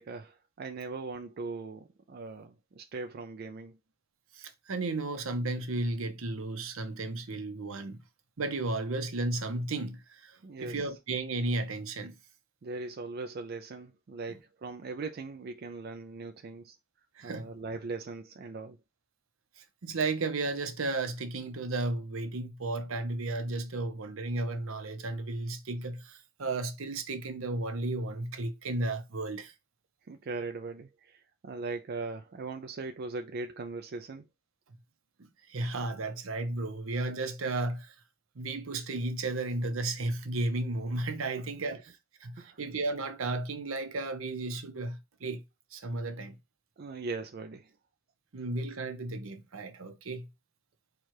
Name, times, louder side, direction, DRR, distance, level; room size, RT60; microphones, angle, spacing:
voice 1, 0.0-3.7 10.4-10.9 12.6-16.7 17.2-18.8 30.1-34.2 42.4-42.6 46.8-47.7, right 3 dB, 45° right, 0.4 m, -40 dB
voice 2, 4.3-8.0 8.4-12.1 17.2-17.5 19.6-29.5 35.2-37.9 38.3-45.4 45.7-46.4 48.3-50.3, right 2 dB, 70° right, 0.8 m, -34 dB
4.4 x 2.4 x 4.6 m
head